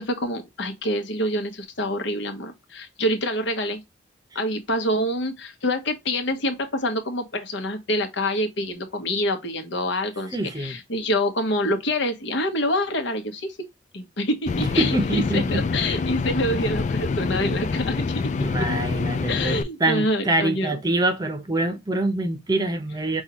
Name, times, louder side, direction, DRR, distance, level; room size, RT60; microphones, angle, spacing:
voice 1, 0.0-3.8 4.3-13.6 13.9-18.0 19.3-20.8, left 1 dB, 75° left, 1.1 m, -26 dB
voice 2, 10.3-10.8 14.8-15.6 18.4-23.2, right 2 dB, 20° right, 0.7 m, -25 dB
sound 1, 14.5-19.6, left 4 dB, 40° left, 0.3 m, -26 dB
5.4 x 2.4 x 2.9 m
head